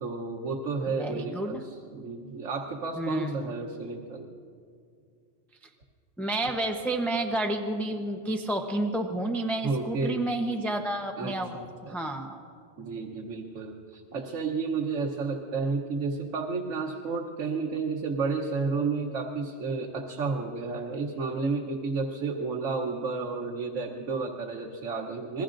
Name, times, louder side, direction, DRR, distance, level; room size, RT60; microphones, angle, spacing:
voice 1, 0.0-4.2 9.6-10.3 11.2-12.0 12.8-25.4, right 4 dB, 90° right, 1 dB, 1.4 m, -31 dB
voice 2, 0.9-1.7 3.0-3.5 6.2-11.5 11.8-12.4, right 1 dB, ahead, 3 dB, 0.7 m, -30 dB
26.5 x 21.0 x 2.6 m, 2.4 s
omnidirectional pair, 1.2 m